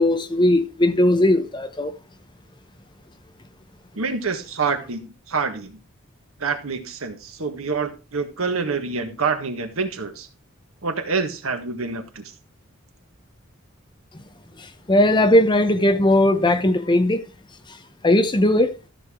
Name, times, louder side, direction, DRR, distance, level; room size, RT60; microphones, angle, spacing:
voice 1, 0.0-1.9 14.9-17.2 18.0-18.7, left 1 dB, 20° left, 0.8 m, -18 dB
voice 2, 3.9-5.8 6.4-10.3 10.8-12.3, right 4 dB, 90° right, 1.6 m, -27 dB
13.5 x 6.6 x 3.7 m
head